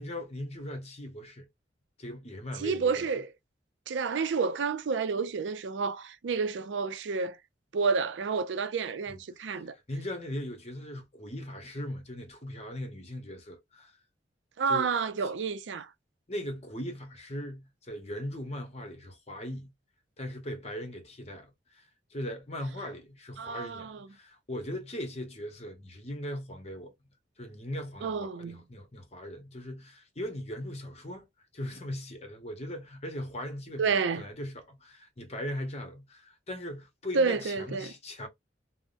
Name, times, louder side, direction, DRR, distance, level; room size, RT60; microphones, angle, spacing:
voice 1, 0.0-1.5 2.0-3.1 9.1-9.2 9.4-14.0 14.7-14.9 16.3-19.7 20.2-26.9 27.4-31.3 31.5-38.3, left 1 dB, 35° left, 0.9 m, -39 dB
voice 2, 2.6-3.3 3.9-7.4 7.7-9.8 14.6-15.9 23.4-24.1 28.0-28.6 33.8-34.2 37.1-37.9, right 5 dB, 85° right, 0.4 m, -30 dB
3.4 x 2.0 x 2.5 m
head